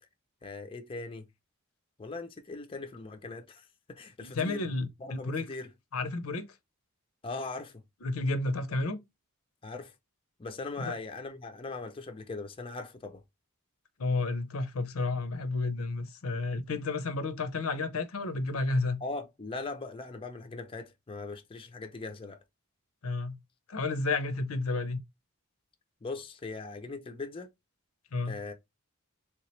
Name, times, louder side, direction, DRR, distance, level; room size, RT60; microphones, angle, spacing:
voice 1, 0.4-1.3 2.0-4.6 5.0-5.7 7.2-7.8 9.6-9.9 10.4-13.2 19.0-22.4 26.0-27.5 28.3-28.5, left 3 dB, 25° left, 0.4 m, -40 dB
voice 2, 4.2-5.5 5.9-6.5 8.0-9.0 10.8-10.9 14.0-19.0 23.0-23.4 23.7-25.0 28.1-28.4, left 3 dB, 80° left, 0.6 m, -31 dB
3.5 x 2.9 x 3.1 m
head